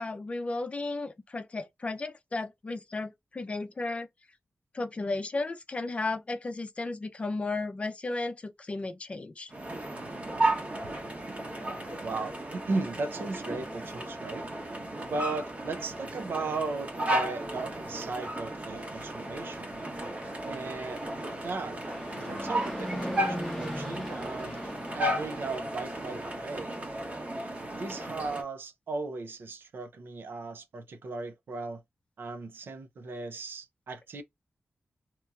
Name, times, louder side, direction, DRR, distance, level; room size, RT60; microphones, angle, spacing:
voice 1, 0.0-4.1 4.7-9.5, left 3 dB, 35° left, 0.5 m, -34 dB
sound 1, 9.5-28.4, right 1 dB, 35° right, 1.0 m, -34 dB
voice 2, 12.0-14.4 15.1-19.8 20.4-21.0 21.4-21.8 22.2-24.6 24.9-26.7 27.8-31.8 32.2-34.2, right 3 dB, 70° right, 0.5 m, -36 dB
Fixed-wing aircraft airplane, 19.4-26.7, equal, 5° left, 0.8 m, -40 dB
2.9 x 2.7 x 2.3 m
wide cardioid pair, 130°, 4 cm